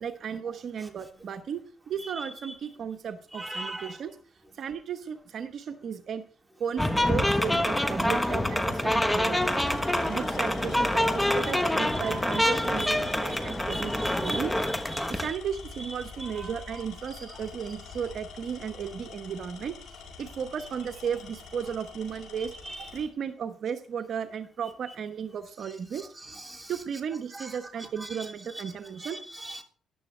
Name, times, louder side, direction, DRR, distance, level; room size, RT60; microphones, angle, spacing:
voice 1, 0.0-4.2 4.6-6.2 6.6-9.7 10.1-14.5 15.1-19.7 20.2-22.5 22.9-26.1 26.7-29.2, right 7 dB, 60° right, 7 dB, 1.0 m, -35 dB
voice 2, 3.3-4.0 11.4-12.9 13.3-15.1 16.4-16.5 22.6-22.9 26.4-26.7 27.3-27.5 28.0-28.1 29.0-29.6, right 1 dB, 10° right, 3 dB, 2.8 m, -39 dB
sound 1, 6.8-15.3, left 1 dB, 10° left, 1.1 m, -26 dB
Tools, 8.2-8.4 9.3-23.1, left 5 dB, 80° left, 5.2 m, -46 dB
14.0 x 11.0 x 3.3 m, 0.42 s
cardioid pair, 90°, 0 cm